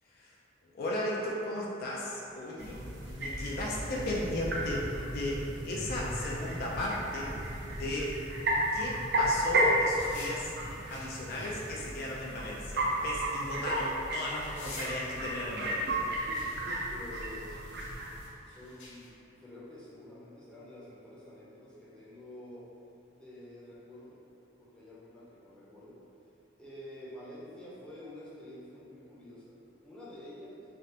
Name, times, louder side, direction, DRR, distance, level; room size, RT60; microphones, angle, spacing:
voice 1, 0.7-2.8 3.1-8.1 8.7-10.5 10.9-16.1, left 1 dB, 55° left, -4 dB, 0.3 m, -36 dB
sound 1, 1.8-19.1, left 2 dB, 85° left, 0.7 m, -55 dB
sound 2, 2.6-18.3, right 1 dB, 60° right, 0.4 m, -33 dB
voice 2, 16.9-18.0 18.4-22.7 23.1-24.2 24.6-26.0 26.6-30.6, left 1 dB, 5° left, -9 dB, 0.6 m, -48 dB
3.2 x 2.4 x 2.8 m, 2.8 s
head